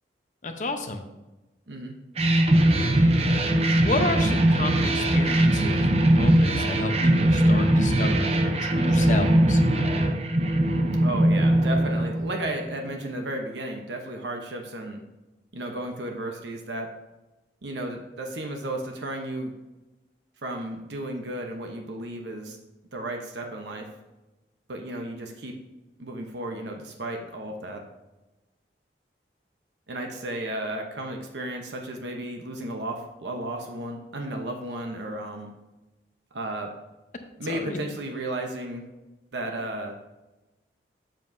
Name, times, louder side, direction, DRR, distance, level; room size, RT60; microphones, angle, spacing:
voice 1, 0.4-1.0 3.8-9.6 37.5-37.8, left 2 dB, 45° left, 5 dB, 0.7 m, -31 dB
sound 1, 2.2-12.7, right 1 dB, 35° right, 0.6 m, -21 dB
voice 2, 11.0-15.0 15.5-16.9 17.6-19.5 20.4-22.6 22.9-23.8 24.7-25.5 26.0-27.8 29.9-35.5 36.3-36.7 37.4-38.8 39.3-40.0, right 1 dB, 80° right, 2 dB, 0.9 m, -33 dB
7.5 x 7.4 x 2.7 m, 1.0 s
head